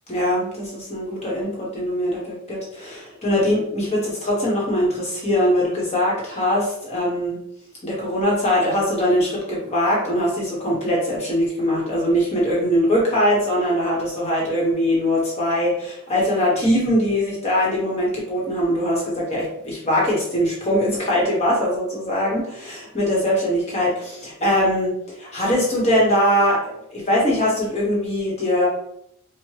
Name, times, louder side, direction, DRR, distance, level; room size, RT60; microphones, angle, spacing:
voice 1, 0.1-7.4 7.8-28.7, equal, 30° left, -4 dB, 1.2 m, -22 dB
4.7 x 2.4 x 3.0 m, 0.71 s
head